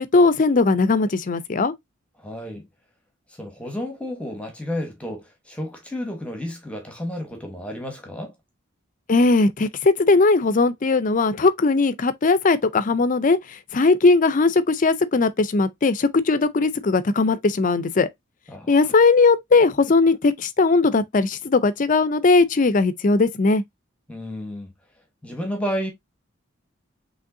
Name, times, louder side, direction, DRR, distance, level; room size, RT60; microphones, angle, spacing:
voice 1, 0.0-1.7 9.1-13.4 13.7-18.1 18.7-23.6, left 3 dB, 40° left, 0.5 m, -19 dB
voice 2, 2.2-2.7 3.4-8.3 18.5-18.7 24.1-24.7 25.2-25.9, equal, 5° left, 1.2 m, -31 dB
5.3 x 3.1 x 2.6 m
head